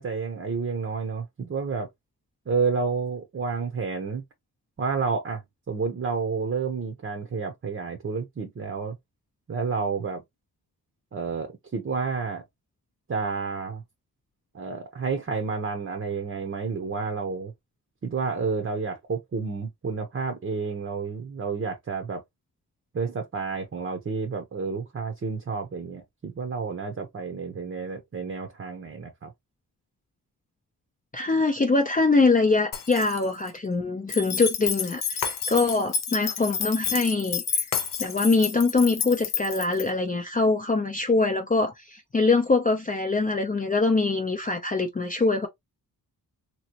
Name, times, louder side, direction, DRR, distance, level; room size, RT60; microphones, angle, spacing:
voice 1, 0.0-1.9 2.5-4.2 4.8-5.4 5.7-9.0 9.5-10.2 11.1-12.4 13.1-13.8 14.5-17.5 18.0-22.2 22.9-29.3, right 5 dB, 35° right, 0.8 m, -30 dB
voice 2, 31.1-37.6 38.0-45.5, left 3 dB, 20° left, 0.6 m, -23 dB
Shatter, 32.7-33.7 35.2-36.2 37.7-38.7, left 6 dB, 55° left, 0.9 m, -36 dB
sound 1, 34.1-39.9, left 7 dB, 85° left, 0.7 m, -30 dB
3.0 x 2.8 x 2.8 m
cardioid pair, 90°, 38 cm